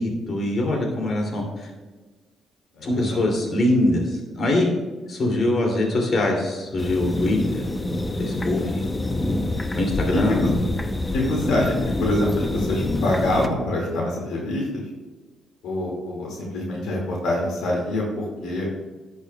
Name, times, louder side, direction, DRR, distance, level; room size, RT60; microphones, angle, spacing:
voice 1, 0.0-1.7 2.8-4.7 5.1-7.6 8.2-8.6 9.7-10.4, left 1 dB, 50° left, 0 dB, 2.5 m, -23 dB
voice 2, 2.8-3.2 8.6-8.8 10.3-10.5 11.1-11.7 12.0-14.9 15.6-18.7, left 1 dB, 85° left, -2 dB, 2.0 m, -25 dB
sound 1, 6.8-13.5, left 2 dB, 20° left, 0.6 m, -26 dB
10.5 x 8.4 x 2.2 m, 1.3 s
cardioid pair, 90°, 0 cm